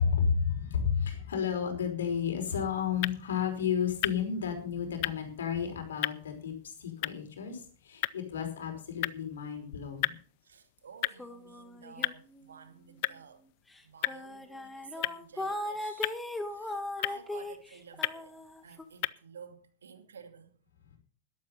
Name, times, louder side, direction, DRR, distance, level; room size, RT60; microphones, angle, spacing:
voice 1, 0.0-10.2 20.9-21.0, left 7 dB, 75° left, 5.1 m, -32 dB
sound 1, 2.9-19.1, left 21 dB, 55° left, 0.6 m, -39 dB
voice 2, 10.4-13.4 13.8-16.2 16.5-18.3 18.6-20.5, right 6 dB, 85° right, 2.6 m, -52 dB
sound 2, 11.2-12.6 12.9-13.2 13.8-13.9 14.1-18.8, left 1 dB, 5° left, 2.0 m, -38 dB
12.5 x 12.5 x 5.6 m
hypercardioid pair, 105°, 0 cm